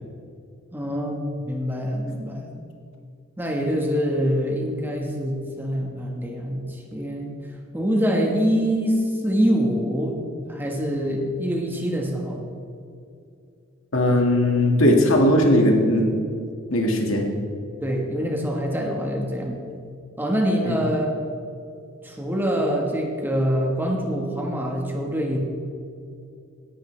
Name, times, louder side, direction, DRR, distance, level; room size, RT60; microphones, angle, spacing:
voice 1, 0.7-1.2 1.5-2.5 3.4-7.4 7.7-12.4 17.8-19.6 20.2-21.2 22.0-25.4, equal, 10° right, 1 dB, 1.3 m, -25 dB
voice 2, 13.9-16.1 16.7-17.3 20.7-20.8, left 1 dB, 70° left, 1 dB, 1.9 m, -18 dB
17.5 x 11.0 x 3.3 m, 2.4 s
head